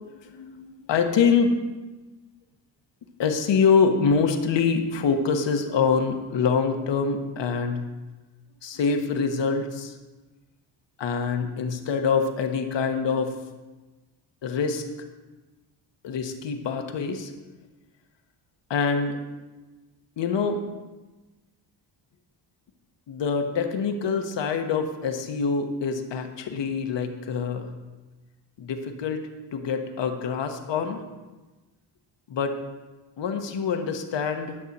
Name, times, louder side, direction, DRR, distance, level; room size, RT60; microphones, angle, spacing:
voice 1, 0.2-1.6 3.2-7.8 8.6-10.0 11.0-13.4 14.4-14.8 16.0-17.3 18.7-19.2 20.2-20.6 23.1-27.7 28.6-31.0 32.3-32.6 33.2-34.6, left 5 dB, 60° left, 6 dB, 1.2 m, -25 dB
11.0 x 6.3 x 4.1 m, 1.2 s
cardioid pair, 75°, 48 cm